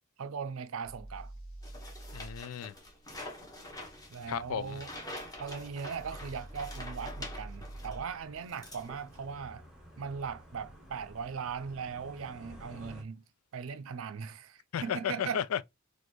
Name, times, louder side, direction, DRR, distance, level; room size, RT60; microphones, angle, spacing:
voice 1, 0.2-1.3 4.1-4.9 5.4-9.7 10.0-13.2 13.5-15.4, right 6 dB, 65° right, 0.5 m, -39 dB
sound 1, 0.8-2.4 5.9-8.1, right 1 dB, 65° left, 1.5 m, -45 dB
sound 2, 1.6-8.0 8.4-9.3, left 1 dB, 15° left, 1.2 m, -46 dB
voice 2, 2.1-2.7 4.3-4.8 14.7-15.6, left 8 dB, 80° left, 0.4 m, -34 dB
sound 3, 3.6-13.0, equal, 5° right, 1.0 m, -53 dB
4.1 x 2.5 x 3.0 m
head